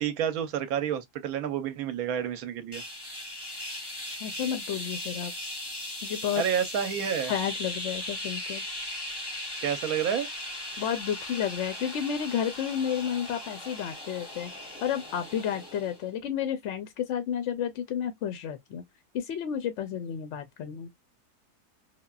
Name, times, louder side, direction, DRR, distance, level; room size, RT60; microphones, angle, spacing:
voice 1, 0.0-2.8 6.4-7.3 9.6-10.3, right 9 dB, 70° right, 1.0 m, -29 dB
sound 1, 2.7-16.1, left 1 dB, 25° left, 0.5 m, -38 dB
voice 2, 4.2-5.3 6.0-6.4 7.3-8.6 10.8-14.5 14.8-18.8 19.1-20.9, left 9 dB, 70° left, 0.7 m, -31 dB
3.4 x 2.2 x 2.3 m
omnidirectional pair, 1.7 m